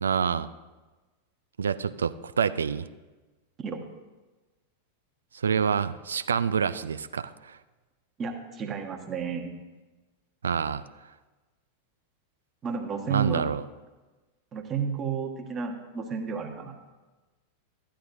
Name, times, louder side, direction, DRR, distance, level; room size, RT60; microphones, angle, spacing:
voice 1, 0.0-0.5 1.6-2.9 5.3-7.6 10.4-10.8 13.1-13.7, right 6 dB, 70° right, 14 dB, 0.3 m, -27 dB
voice 2, 8.2-9.5 12.6-13.4 14.5-16.8, right 6 dB, 25° right, 3 dB, 1.2 m, -32 dB
14.0 x 10.0 x 2.7 m, 1.2 s
figure-of-eight pair, 90°, 0 cm